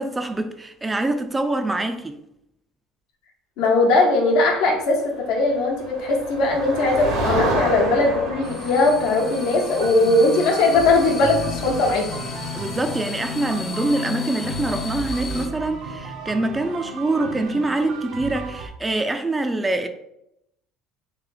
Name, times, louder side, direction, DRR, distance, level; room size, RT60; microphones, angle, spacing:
voice 1, 0.0-2.2 12.5-19.9, right 2 dB, 15° right, 0.3 m, -25 dB
voice 2, 3.6-12.1, left 2 dB, 75° left, 1.0 m, -19 dB
Motor vehicle (road), 5.2-13.0, right 2 dB, 85° right, 1.2 m, -31 dB
sound 1, 8.4-15.5, left 5 dB, 35° left, 0.5 m, -33 dB
sound 2, 9.3-18.7, right 4 dB, 65° right, 0.6 m, -35 dB
3.2 x 2.7 x 3.8 m
cardioid pair, 115°, 0 cm